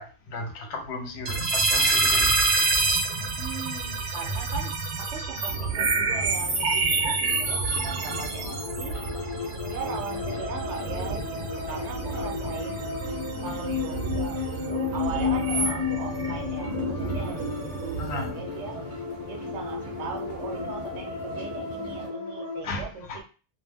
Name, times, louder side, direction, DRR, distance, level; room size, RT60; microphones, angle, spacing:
voice 1, 0.0-2.4 18.0-18.4 22.6-23.2, left 2 dB, 75° left, 0.9 m, -35 dB
sound 1, 1.3-18.3, right 3 dB, 60° right, 0.6 m, -28 dB
voice 2, 3.2-9.0 9.6-12.8 13.4-18.8 19.2-23.2, right 6 dB, 80° right, 1.0 m, -39 dB
sound 2, 5.5-22.1, equal, 40° right, 1.3 m, -39 dB
sound 3, 8.0-22.6, left 5 dB, 30° left, 0.5 m, -33 dB
2.5 x 2.0 x 3.3 m
omnidirectional pair, 1.1 m